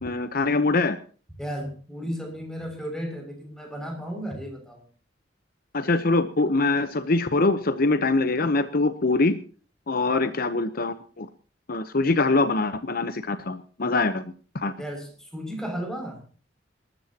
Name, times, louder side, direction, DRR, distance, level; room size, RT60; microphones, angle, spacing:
voice 1, 0.0-1.0 5.7-9.4 9.9-11.3 11.7-14.2 14.5-14.7, left 3 dB, 55° left, 10 dB, 0.9 m, -23 dB
voice 2, 1.4-4.8 10.1-10.4 14.8-16.2, equal, 5° left, 3 dB, 6.3 m, -34 dB
26.0 x 13.5 x 2.9 m, 0.40 s
head